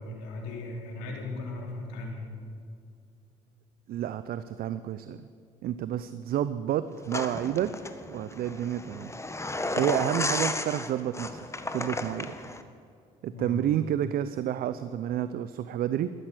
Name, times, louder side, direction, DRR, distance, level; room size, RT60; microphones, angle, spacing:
voice 1, 0.0-2.3 13.3-13.6, left 2 dB, 85° left, 1 dB, 3.2 m, -37 dB
voice 2, 3.9-5.2 5.6-7.7 8.1-9.1 9.7-11.4 11.7-12.4 13.2-16.1, right 11 dB, 60° right, 13 dB, 0.6 m, -30 dB
sound 1, 7.1-12.6, left 2 dB, 15° left, 1.4 m, -33 dB
13.5 x 13.0 x 8.2 m, 2.4 s
hypercardioid pair, 55°, 17 cm